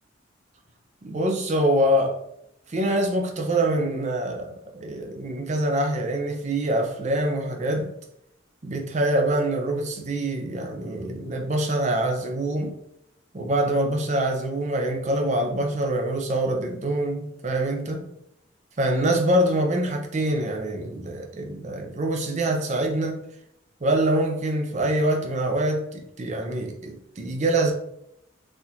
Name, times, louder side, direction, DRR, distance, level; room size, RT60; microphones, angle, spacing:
voice 1, 1.0-2.2 2.7-7.9 8.6-12.7 13.3-18.1 18.8-23.2 23.8-27.7, right 1 dB, 35° right, 2 dB, 0.5 m, -25 dB
4.2 x 2.5 x 2.8 m, 0.77 s
head